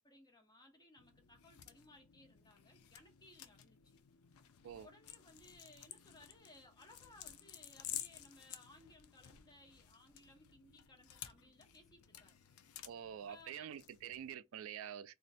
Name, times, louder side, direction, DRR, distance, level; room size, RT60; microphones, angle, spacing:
voice 1, 0.0-4.0 4.8-12.4 13.3-13.8, left 2 dB, 20° left, 0.8 m, -62 dB
sound 1, 1.0-14.4, left 11 dB, 90° left, 0.4 m, -53 dB
voice 2, 12.9-15.2, right 9 dB, 70° right, 0.3 m, -47 dB
2.5 x 2.1 x 3.9 m
head